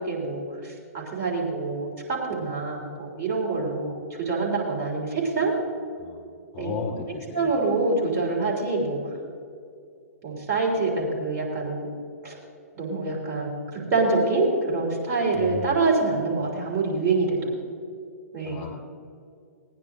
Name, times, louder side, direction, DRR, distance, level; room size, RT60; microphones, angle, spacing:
voice 1, 0.0-5.5 6.6-6.8 7.3-9.0 10.2-11.9 12.2-12.4 12.7-17.5 18.3-18.6, right 3 dB, 30° right, -3 dB, 3.3 m, -26 dB
voice 2, 6.5-7.5 15.3-15.8 18.4-18.8, left 6 dB, 35° left, 2 dB, 2.9 m, -35 dB
18.5 x 9.8 x 3.8 m, 2.4 s
figure-of-eight pair, 115°, 9 cm